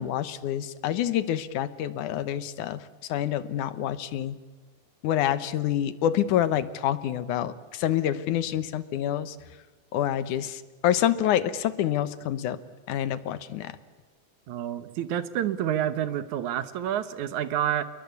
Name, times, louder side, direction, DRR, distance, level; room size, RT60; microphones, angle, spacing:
voice 1, 0.0-4.4 5.0-9.4 9.9-12.6 12.9-13.8, left 11 dB, 85° left, 14 dB, 2.6 m, -27 dB
voice 2, 14.5-17.8, right 10 dB, 75° right, 13 dB, 2.5 m, -28 dB
28.0 x 22.0 x 8.4 m, 1.3 s
omnidirectional pair, 3.5 m